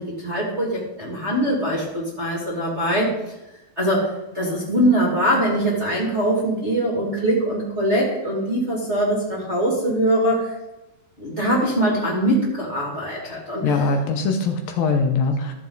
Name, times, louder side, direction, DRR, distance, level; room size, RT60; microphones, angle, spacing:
voice 1, 0.0-3.1 3.8-10.5 11.2-13.9, right 1 dB, 25° right, -4 dB, 1.9 m, -22 dB
voice 2, 13.2-15.5, left 4 dB, 75° left, 4 dB, 2.5 m, -22 dB
14.0 x 7.4 x 3.9 m, 0.98 s
omnidirectional pair, 4.4 m